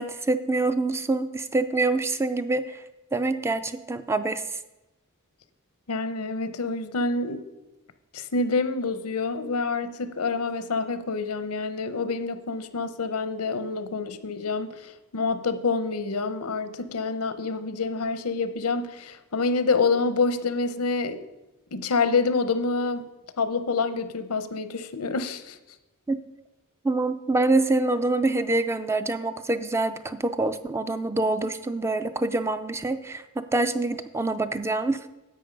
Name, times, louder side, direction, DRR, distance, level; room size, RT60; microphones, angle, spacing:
voice 1, 0.0-2.8 3.1-4.6 26.1-26.2 26.8-35.1, right 2 dB, 10° right, 11 dB, 0.4 m, -26 dB
voice 2, 5.9-7.4 8.1-21.2 21.7-23.0 23.4-25.6, left 4 dB, 90° left, 12 dB, 0.8 m, -27 dB
10.5 x 7.7 x 5.3 m, 1.0 s
head